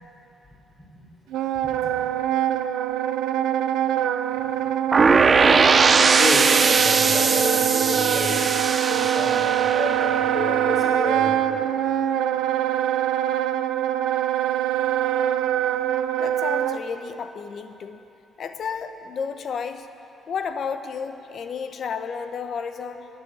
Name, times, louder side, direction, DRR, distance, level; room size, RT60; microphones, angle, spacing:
Wind instrument woodwind instrument, 1.3-16.8, right 11 dB, 85° right, 0.4 m, -24 dB
voice 1, 1.6-2.0 5.9-8.5 8.9-11.4, left 2 dB, 30° left, -2 dB, 4.0 m, -30 dB
sound 1, 4.9-10.8, right 4 dB, 35° right, 0.5 m, -20 dB
voice 2, 16.2-18.1 18.4-19.9 20.3-23.1, left 6 dB, 60° left, 9 dB, 0.8 m, -32 dB
11.5 x 9.1 x 9.6 m, 2.8 s
cardioid pair, 90°, 0 cm